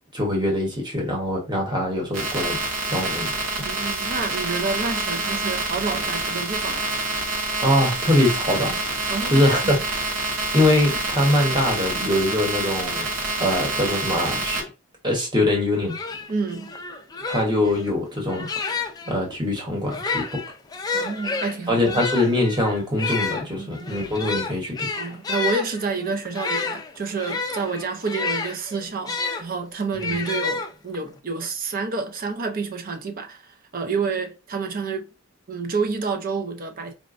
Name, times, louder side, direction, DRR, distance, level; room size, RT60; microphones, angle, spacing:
voice 1, 0.1-2.6 2.8-3.3 7.6-8.8 9.3-9.7 10.5-13.0 13.4-14.6 15.0-15.9 17.3-20.4 21.7-24.9 30.1-30.2, left 1 dB, 20° right, 1.0 m, -23 dB
sound 1, 2.1-14.6, right 2 dB, 65° right, 0.9 m, -27 dB
voice 2, 3.6-6.9 9.1-9.7 16.3-16.7 20.9-22.1 23.6-24.1 24.9-33.4 33.7-35.1 35.5-36.9, right 4 dB, 40° right, 0.5 m, -29 dB
sound 2, 15.5-15.6 15.9-19.1 19.8-29.4 30.0-31.1, left 4 dB, 20° left, 0.3 m, -30 dB
4.0 x 2.1 x 2.4 m
head